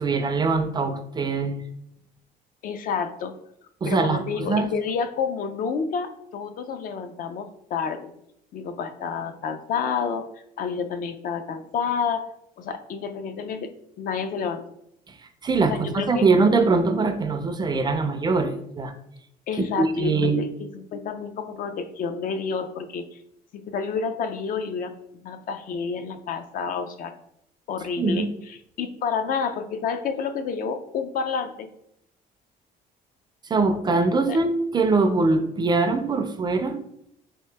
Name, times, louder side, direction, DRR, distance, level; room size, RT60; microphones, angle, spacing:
voice 1, 0.0-1.6 3.8-4.7 15.4-18.9 19.8-20.4 28.0-28.3 33.5-36.8, right 3 dB, 25° right, 7 dB, 0.4 m, -22 dB
voice 2, 2.6-3.3 3.8-8.1 8.5-10.3 10.6-12.2 12.6-13.7 14.0-14.7 15.7-16.2 19.5-23.2 23.5-27.1 27.7-31.7 34.3-34.4, left 6 dB, 55° left, 8 dB, 0.4 m, -29 dB
3.1 x 2.9 x 3.3 m, 0.76 s
cardioid pair, 110°, 17 cm